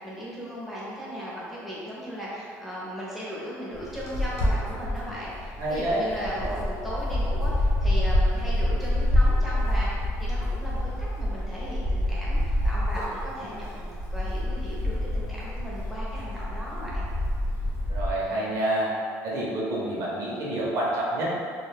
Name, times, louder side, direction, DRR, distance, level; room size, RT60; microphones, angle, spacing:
voice 1, 0.0-10.9 11.2-17.1, equal, ahead, -8 dB, 0.7 m, -37 dB
sound 1, 3.7-18.1, left 1 dB, 50° left, 0.8 m, -27 dB
voice 2, 5.6-6.1 6.4-6.6 17.9-18.9 19.2-21.3, right 1 dB, 50° right, -5 dB, 0.8 m, -28 dB
2.6 x 2.3 x 3.4 m, 2.2 s
cardioid pair, 155°, 6 cm